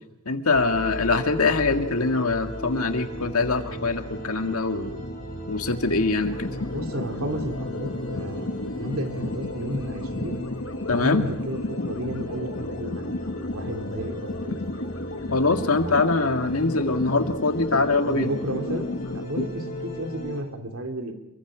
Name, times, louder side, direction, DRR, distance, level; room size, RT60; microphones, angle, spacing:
voice 1, 0.3-5.0 5.5-6.5 10.9-11.2 15.3-18.3 19.4-19.5, left 3 dB, 85° left, 6 dB, 2.0 m, -23 dB
sound 1, 0.5-20.4, equal, 40° left, 6.2 m, -36 dB
sound 2, 6.2-19.2, left 2 dB, 60° left, 1.0 m, -34 dB
voice 2, 6.7-10.4 10.9-14.9 18.1-21.1, right 1 dB, 75° right, 4 dB, 3.1 m, -33 dB
28.0 x 23.5 x 5.1 m, 0.87 s
head